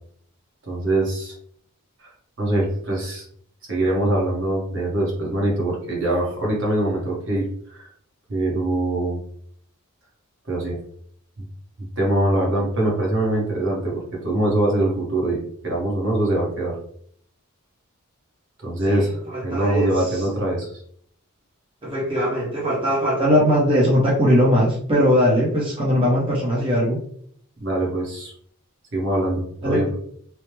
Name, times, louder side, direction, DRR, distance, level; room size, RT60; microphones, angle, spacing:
voice 1, 0.7-1.3 2.0-2.1 2.4-3.2 3.7-7.9 8.3-9.2 10.5-10.8 11.4-11.5 11.8-16.7 18.6-20.8 27.6-28.3 28.9-29.9, right 1 dB, 55° right, -2 dB, 1.1 m, -23 dB
voice 2, 18.8-20.3 21.8-27.0 29.6-29.8, equal, 25° right, -6 dB, 0.7 m, -20 dB
3.1 x 2.0 x 3.1 m, 0.62 s
head